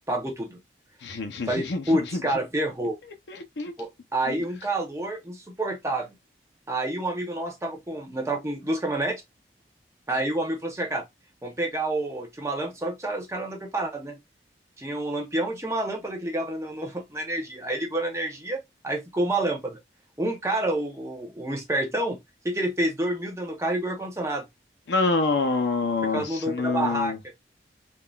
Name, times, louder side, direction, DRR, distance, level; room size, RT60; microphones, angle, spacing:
voice 1, 0.1-0.6 1.5-3.0 3.8-6.1 6.7-9.2 10.1-11.0 11.4-14.2 14.8-19.8 20.2-22.2 22.4-24.5 26.1-27.1, right 1 dB, 15° right, 0.7 m, -28 dB
voice 2, 1.0-2.2 3.3-3.7 4.3-4.4 24.9-27.2, left 3 dB, 75° left, 0.6 m, -27 dB
3.7 x 2.4 x 2.3 m
head